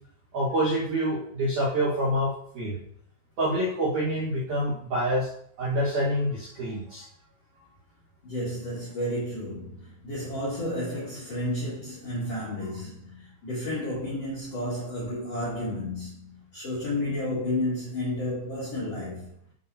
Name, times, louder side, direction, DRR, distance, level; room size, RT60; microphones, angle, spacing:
voice 1, 0.3-2.8 3.4-5.3 5.6-7.1 7.6-7.7, equal, 70° right, 1.9 m, -27 dB
voice 2, 8.2-19.3, left 1 dB, 50° left, 1.9 m, -32 dB
12.0 x 4.1 x 2.8 m
omnidirectional pair, 6.0 m